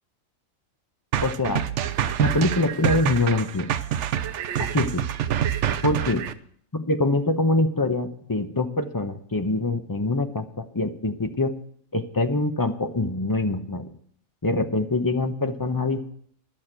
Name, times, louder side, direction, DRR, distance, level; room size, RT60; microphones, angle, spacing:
sound 1, 1.1-6.3, right 10 dB, 65° right, 0.9 m, -26 dB
voice 1, 1.2-1.6 2.2-3.7 4.6-5.0 5.8-6.2 6.7-11.6 11.9-13.9 14.4-16.0, left 2 dB, 20° left, 6 dB, 0.7 m, -24 dB
12.0 x 6.4 x 8.9 m, 0.62 s
omnidirectional pair, 1.4 m